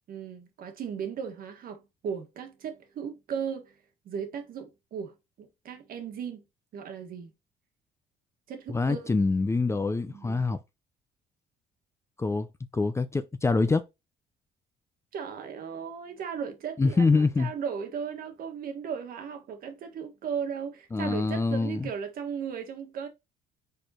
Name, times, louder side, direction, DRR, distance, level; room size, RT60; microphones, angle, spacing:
voice 1, 0.1-3.7 4.0-6.4 6.7-7.3 8.5-9.1 10.1-10.5 15.1-23.1, right 7 dB, 60° right, 1.6 m, -36 dB
voice 2, 8.7-10.6 12.2-13.8 16.8-17.5 20.9-21.9, left 3 dB, 15° left, 0.5 m, -25 dB
5.1 x 4.3 x 4.3 m
cardioid pair, 110°, 17 cm